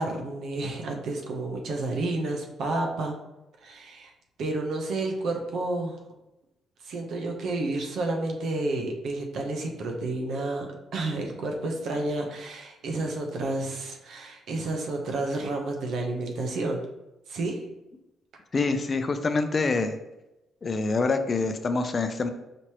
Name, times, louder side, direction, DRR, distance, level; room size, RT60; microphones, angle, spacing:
voice 1, 0.0-3.1 3.6-4.1 4.4-6.0 6.8-16.8 17.3-17.6, right 2 dB, 70° right, 2 dB, 0.8 m, -30 dB
voice 2, 18.5-20.0 20.6-22.3, left 3 dB, 35° left, 8 dB, 0.4 m, -26 dB
5.1 x 3.0 x 2.9 m, 0.94 s
cardioid pair, 90°, 0 cm